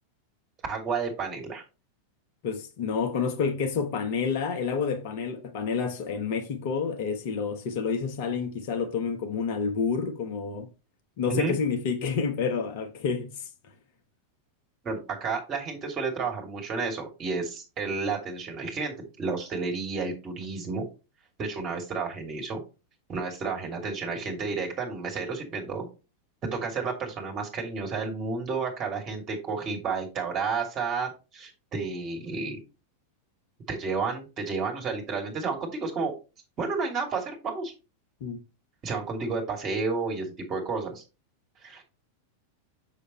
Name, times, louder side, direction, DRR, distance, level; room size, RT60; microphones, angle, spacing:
voice 1, 0.7-1.6 11.3-11.5 14.8-20.8 21.4-22.6 23.1-25.9 26.5-32.6 33.7-36.1 36.6-37.7 38.8-41.0 41.6-41.8, right 4 dB, 30° right, 2.9 m, -31 dB
voice 2, 2.4-10.7 11.2-13.3 38.2-38.4, left 5 dB, 50° left, 1.2 m, -29 dB
6.6 x 6.5 x 3.2 m
figure-of-eight pair, 90°, 0 cm